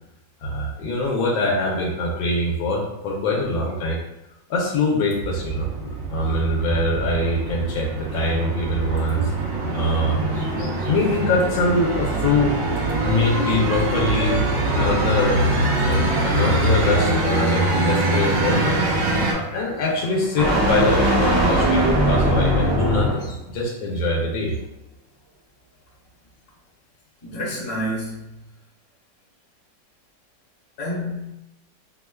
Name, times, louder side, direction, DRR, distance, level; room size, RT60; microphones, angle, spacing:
voice 1, 0.4-4.0 4.5-5.7 6.1-9.3 9.7-12.6 13.0-14.4 14.7-18.8 19.2-24.6, left 2 dB, 85° left, -2 dB, 1.4 m, -23 dB
sound 1, 5.2-19.3, right 2 dB, 75° right, 0.7 m, -23 dB
sound 2, 8.8-23.4, equal, 15° right, 0.6 m, -25 dB
voice 2, 27.2-28.4 30.8-31.3, equal, 45° left, -5 dB, 1.3 m, -29 dB
4.7 x 2.2 x 2.2 m, 0.94 s
omnidirectional pair, 2.1 m